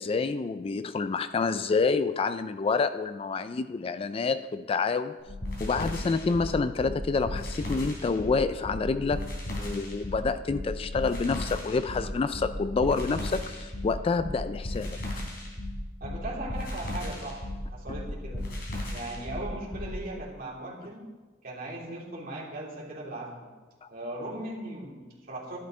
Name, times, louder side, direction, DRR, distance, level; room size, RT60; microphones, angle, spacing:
voice 1, 0.0-5.2 5.6-9.2 9.6-15.0 23.8-23.9, left 4 dB, 30° left, 12 dB, 0.3 m, -28 dB
sound 1, 5.3-20.0, left 1 dB, 60° left, 3.4 m, -35 dB
voice 2, 16.0-17.4 17.7-18.5 18.9-21.1 21.4-23.5 23.9-25.6, right 1 dB, 50° right, -3 dB, 2.9 m, -38 dB
12.5 x 11.5 x 3.8 m, 1.3 s
head